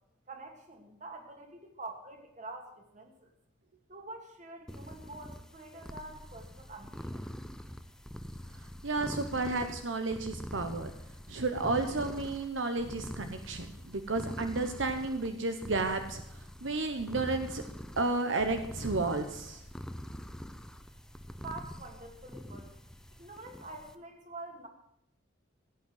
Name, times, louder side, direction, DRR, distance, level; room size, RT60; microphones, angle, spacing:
voice 1, 0.3-3.3 3.9-7.2 21.3-22.7 23.1-24.7, right 2 dB, 40° right, 3 dB, 2.7 m, -46 dB
sound 1, 4.7-23.9, equal, 5° left, 0.7 m, -44 dB
voice 2, 8.8-10.9 11.3-16.2 16.6-17.6 18.0-19.6, right 3 dB, 75° right, 7 dB, 1.1 m, -32 dB
16.5 x 8.3 x 8.0 m, 0.78 s
head